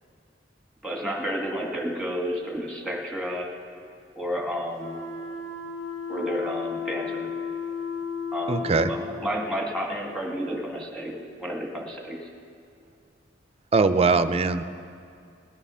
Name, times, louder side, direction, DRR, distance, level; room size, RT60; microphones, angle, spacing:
voice 1, 0.8-3.5 4.1-5.0 6.1-7.3 8.3-11.1 11.4-12.2, equal, ahead, -1 dB, 1.8 m, -31 dB
sound 1, 4.8-9.0, left 5 dB, 60° left, 3.7 m, -33 dB
voice 2, 8.5-8.9 13.7-14.6, right 4 dB, 35° right, 11 dB, 0.5 m, -21 dB
18.5 x 9.7 x 5.6 m, 2.4 s
head